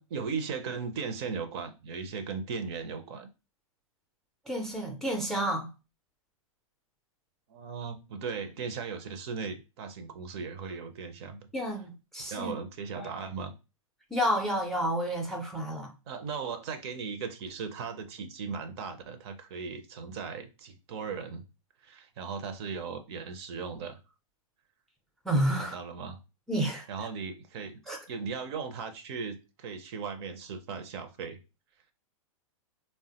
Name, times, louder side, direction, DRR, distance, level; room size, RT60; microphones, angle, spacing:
voice 1, 0.0-3.3 7.5-11.5 12.3-13.5 16.1-21.4 21.8-24.0 25.6-26.2 26.9-27.8 28.1-31.4, right 5 dB, 50° right, 0.5 m, -37 dB
voice 2, 4.5-5.7 11.5-12.5 13.0-13.1 14.1-15.9 25.3-25.8 26.5-26.9 27.9-28.0, equal, ahead, 0.4 m, -30 dB
3.3 x 2.1 x 2.7 m
hypercardioid pair, 120°, 18 cm